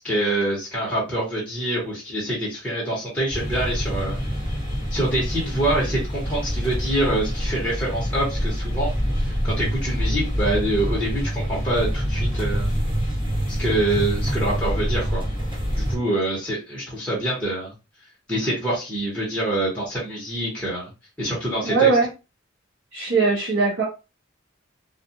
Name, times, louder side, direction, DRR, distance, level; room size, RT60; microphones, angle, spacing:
voice 1, 0.0-4.2 4.9-8.9 9.2-12.7 13.6-15.2 15.8-17.7 18.3-20.9 21.2-21.9, right 1 dB, 5° left, -7 dB, 1.0 m, -25 dB
sound 1, 3.3-16.0, equal, 25° right, 1.4 m, -26 dB
voice 2, 21.6-22.1 22.9-23.8, right 4 dB, 70° right, -4 dB, 0.7 m, -20 dB
2.4 x 2.3 x 2.7 m, 0.29 s
head